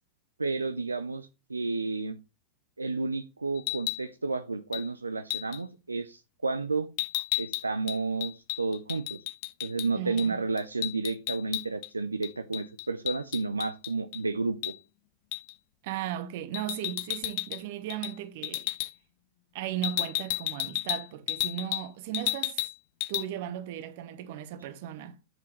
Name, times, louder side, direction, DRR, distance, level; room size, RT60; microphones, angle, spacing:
voice 1, 0.4-2.2 2.8-6.9 7.4-8.3 8.6-9.2 9.6-14.7, right 3 dB, 80° right, 0.5 m, -31 dB
sound 1, 3.6-4.0 4.7-4.9 5.3-5.6 7.0-9.9 10.2-10.3 10.6-11.9 12.2-14.2 14.6-14.8 15.3-15.5 16.5-17.6 17.9-18.1 18.4-18.9 19.8-21.9 22.1-22.7 23.0-23.2, left 20 dB, 50° left, 0.4 m, -33 dB
voice 2, 9.9-10.4 15.8-18.7 19.5-22.7 23.1-25.2, right 12 dB, 50° right, 1.0 m, -36 dB
7.8 x 7.7 x 3.1 m
figure-of-eight pair, 90°, 0 cm